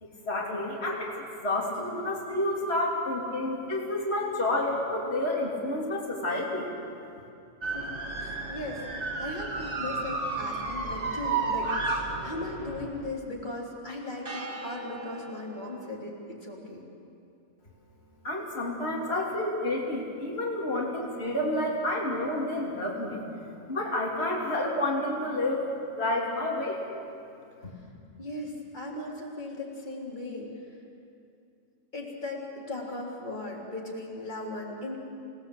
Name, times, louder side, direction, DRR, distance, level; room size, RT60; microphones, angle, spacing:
voice 1, 0.0-6.7 18.2-23.2 23.7-25.6 26.0-26.8 27.6-27.7, left 1 dB, 50° left, -5 dB, 3.6 m, -29 dB
voice 2, 7.6-11.7 12.2-16.8 28.2-30.5 31.9-35.0, left 2 dB, 35° left, -3 dB, 4.0 m, -37 dB
sound 1, 7.6-13.1 14.3-15.9, right 3 dB, 45° right, 1.9 m, -33 dB
28.0 x 17.5 x 8.0 m, 2.5 s
omnidirectional pair, 1.3 m